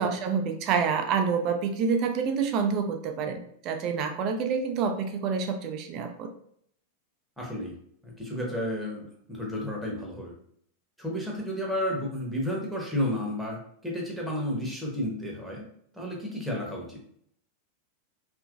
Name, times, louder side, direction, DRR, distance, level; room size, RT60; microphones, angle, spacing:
voice 1, 0.0-6.3, right 6 dB, 40° right, 6 dB, 0.4 m, -27 dB
voice 2, 7.4-7.7 8.0-10.3 11.0-15.6 15.9-17.0, left 1 dB, 5° right, -3 dB, 0.8 m, -32 dB
2.8 x 2.5 x 2.4 m, 0.66 s
figure-of-eight pair, 90°, 0 cm